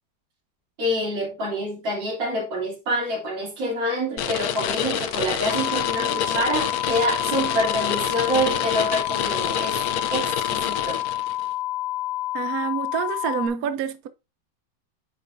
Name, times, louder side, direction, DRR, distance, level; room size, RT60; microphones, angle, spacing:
voice 1, 0.8-9.8 10.1-11.0, equal, 85° right, 3.7 m, -26 dB
sound 1, 4.2-11.4, left 8 dB, 65° left, 1.1 m, -28 dB
sound 2, 5.5-13.5, left 15 dB, 20° left, 1.9 m, -29 dB
voice 2, 12.3-14.1, right 8 dB, 65° right, 1.0 m, -27 dB
9.4 x 5.2 x 2.6 m
omnidirectional pair, 2.0 m